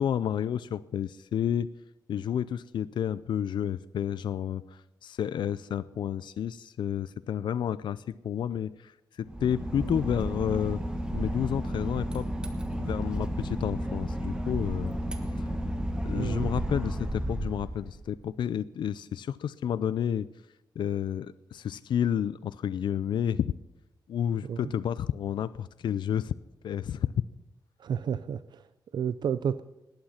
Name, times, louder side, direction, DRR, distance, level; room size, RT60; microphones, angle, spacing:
voice 1, 0.0-1.7 2.1-4.6 5.0-8.9 9.2-10.8 11.1-12.3 12.8-14.9 15.4-15.5 16.0-20.3 20.8-23.5 24.1-26.3 26.6-27.1, left 9 dB, 80° left, 15 dB, 0.4 m, -30 dB
Boat Water vehicle / Engine, 9.2-18.2, equal, 10° right, 1.3 m, -32 dB
voice 2, 16.1-16.5 24.4-24.7 27.8-29.6, right 8 dB, 75° right, 14 dB, 0.5 m, -31 dB
19.0 x 9.0 x 5.7 m, 0.96 s
wide cardioid pair, 145°, 8 cm